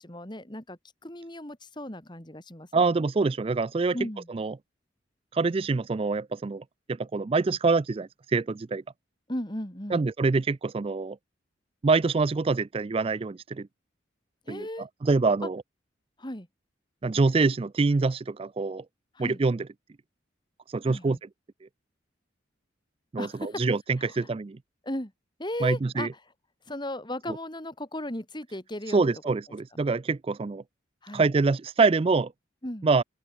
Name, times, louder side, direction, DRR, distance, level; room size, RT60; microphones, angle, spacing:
voice 1, 0.0-2.9 3.9-4.3 9.3-10.1 14.5-14.9 16.2-16.5 19.1-19.4 20.8-21.2 23.2-23.6 24.0-24.3 24.8-25.1 25.4-26.1 26.7-29.1 31.0-31.3 32.6-32.9, left 1 dB, 25° left, 3.0 m, -36 dB
voice 2, 2.7-4.0 4.3-4.5 5.3-8.8 9.9-11.2 11.8-13.7 14.5-15.6 17.0-18.8 19.2-19.7 20.7-21.2 23.1-24.6 25.6-26.1 28.9-30.6 31.1-32.3 32.8-33.0, right 4 dB, 30° right, 0.4 m, -25 dB
open air
head